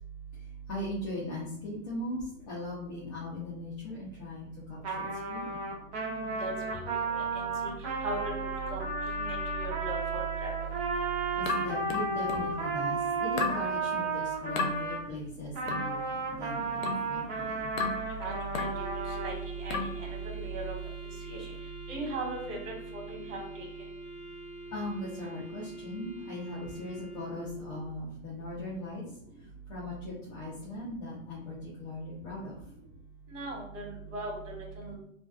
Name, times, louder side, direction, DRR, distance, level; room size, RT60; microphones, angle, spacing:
voice 1, 0.7-5.6 11.3-16.0 16.3-17.7 24.7-29.0 29.7-32.6, left 1 dB, 30° left, -6 dB, 0.6 m, -39 dB
Trumpet, 4.8-15.0 15.5-19.3, right 3 dB, 30° right, 0.6 m, -33 dB
voice 2, 6.0-7.7 8.0-8.3 8.7-8.9 9.2-10.5 18.3-18.8 19.2-19.3 19.6-20.7 21.3-21.4 21.9-23.6 33.3-34.9, right 3 dB, 70° right, 0 dB, 1.1 m, -38 dB
sound 1, 11.5-12.6 13.4-13.7 14.6-14.8 15.7-15.9 16.8-17.1 17.8-18.1 18.5-18.8 19.7-20.0, left 5 dB, 85° left, 0.7 m, -33 dB
Wind instrument woodwind instrument, 18.6-27.9, right 2 dB, 5° right, 1.4 m, -44 dB
2.4 x 2.3 x 2.4 m, 0.68 s
hypercardioid pair, 155°, 40 cm